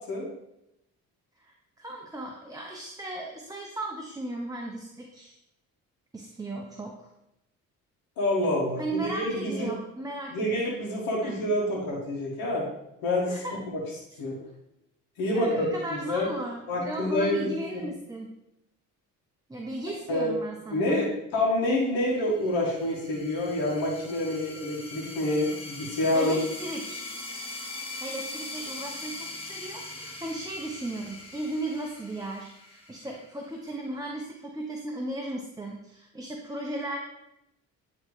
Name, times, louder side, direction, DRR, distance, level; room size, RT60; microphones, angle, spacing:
voice 1, 1.4-5.3 6.1-7.1 8.8-10.6 11.2-11.3 13.3-13.5 15.3-18.3 19.5-21.0 26.1-27.0 28.0-37.0, right 2 dB, 10° right, 0 dB, 0.8 m, -36 dB
voice 2, 8.2-9.7 10.3-12.7 13.0-13.4 14.2-14.3 15.2-15.7 16.1-16.3 16.7-17.8 20.1-20.3 20.7-26.4, left 1 dB, 90° left, -3 dB, 1.5 m, -27 dB
sound 1, 22.3-33.5, left 2 dB, 15° left, 1.4 m, -41 dB
9.7 x 3.2 x 3.2 m, 0.85 s
supercardioid pair, 70°, 34 cm